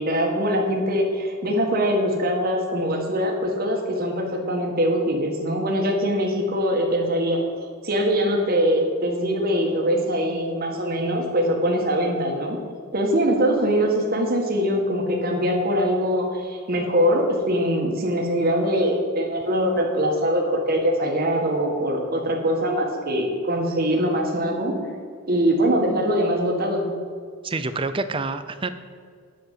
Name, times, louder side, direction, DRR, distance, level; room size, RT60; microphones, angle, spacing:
voice 1, 0.0-7.4 7.8-12.6 12.9-24.7 25.3-26.9, equal, 40° right, 1 dB, 1.8 m, -22 dB
voice 2, 27.4-28.7, right 3 dB, 25° right, 11 dB, 0.5 m, -27 dB
9.3 x 7.1 x 7.6 m, 2.1 s
head